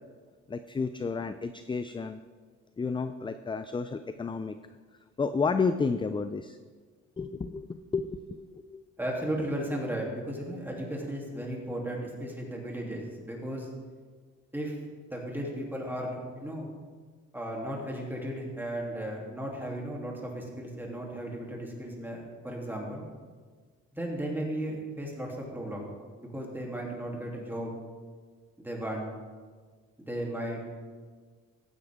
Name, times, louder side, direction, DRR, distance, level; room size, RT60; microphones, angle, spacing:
voice 1, 0.5-2.2 2.8-4.6 5.2-6.6 7.2-8.8, left 4 dB, 15° left, 10 dB, 0.4 m, -31 dB
voice 2, 9.0-13.7 14.5-14.8 15.1-16.7 17.3-23.0 23.9-25.9 26.2-27.7 28.6-29.1 30.1-30.6, right 1 dB, 5° right, -2 dB, 3.0 m, -35 dB
15.0 x 9.4 x 3.6 m, 1.5 s
cardioid pair, 90°, 30 cm